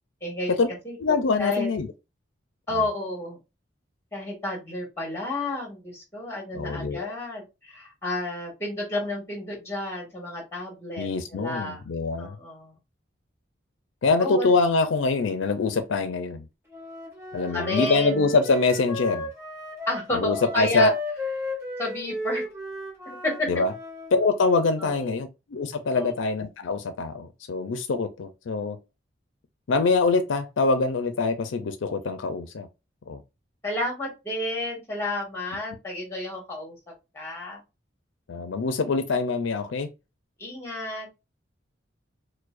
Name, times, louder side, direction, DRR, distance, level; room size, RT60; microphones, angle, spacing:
voice 1, 0.2-1.0 1.4-1.7 2.7-3.4 4.1-11.8 12.2-12.7 14.2-14.5 17.5-18.3 19.9-20.9 21.8-22.4 23.0-23.5 24.8-25.2 25.9-26.2 33.6-36.7 37.1-37.6 40.4-41.1, left 1 dB, 15° left, 1.6 m, -31 dB
voice 2, 1.0-1.9 6.5-7.1 11.0-12.4 14.0-16.4 17.3-19.3 20.1-20.9 23.5-23.7 24.1-28.8 29.7-32.7 33.1-33.2 38.3-39.9, left 3 dB, 85° left, 0.4 m, -24 dB
Wind instrument woodwind instrument, 16.7-24.1, left 1 dB, 10° right, 1.5 m, -34 dB
4.6 x 2.1 x 2.4 m
head